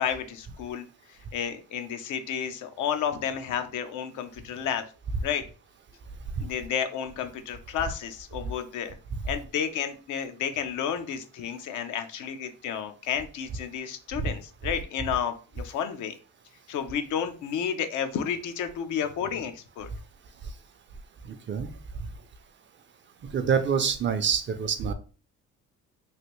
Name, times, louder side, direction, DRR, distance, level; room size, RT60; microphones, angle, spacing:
voice 1, 0.0-4.8 5.2-5.4 6.4-9.0 9.2-16.2 16.7-19.9, left 8 dB, 80° left, 7 dB, 0.6 m, -31 dB
voice 2, 21.2-21.7 23.3-24.9, right 7 dB, 40° right, 10 dB, 0.5 m, -26 dB
3.2 x 2.5 x 3.0 m, 0.37 s
cardioid pair, 90°, 30 cm